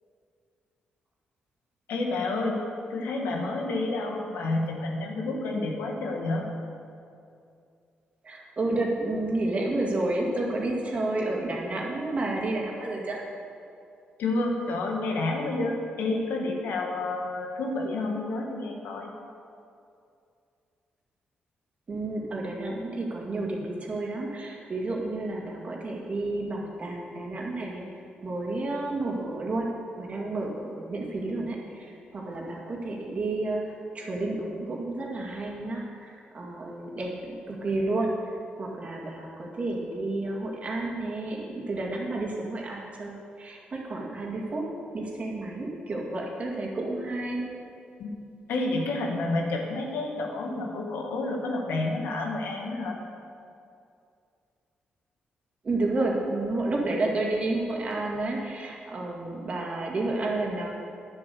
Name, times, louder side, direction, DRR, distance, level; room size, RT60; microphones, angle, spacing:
voice 1, 1.9-2.6 2.9-6.5 14.2-19.1 48.0-48.1 48.5-53.0, left 2 dB, 85° left, 1 dB, 1.6 m, -29 dB
voice 2, 8.2-13.2 21.9-27.8 28.2-29.7 30.0-44.6 44.9-47.5 55.6-60.7, right 2 dB, 40° right, -1 dB, 2.1 m, -31 dB
9.7 x 7.8 x 6.8 m, 2.4 s
cardioid pair, 95°, 3 cm